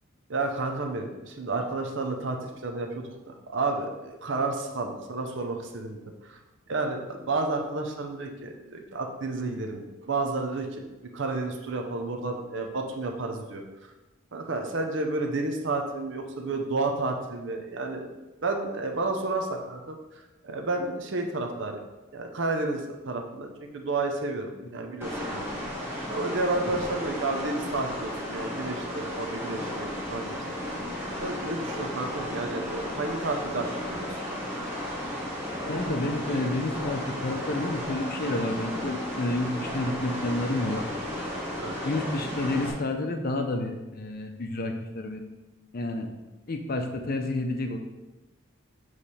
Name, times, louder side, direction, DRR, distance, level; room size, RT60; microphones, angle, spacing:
voice 1, 0.3-6.4 6.7-10.8 11.1-13.9 14.3-18.1 18.4-21.8 22.1-23.5 23.7-25.5 26.1-30.4 31.2-34.2 41.6-41.7, right 3 dB, 55° right, 3 dB, 0.6 m, -31 dB
sound 1, 25.0-42.7, equal, 10° right, 1.3 m, -34 dB
voice 2, 35.7-40.8 41.8-45.3 45.7-46.1 46.5-47.8, left 2 dB, 45° left, 5 dB, 0.6 m, -30 dB
7.1 x 3.3 x 4.2 m, 1.1 s
head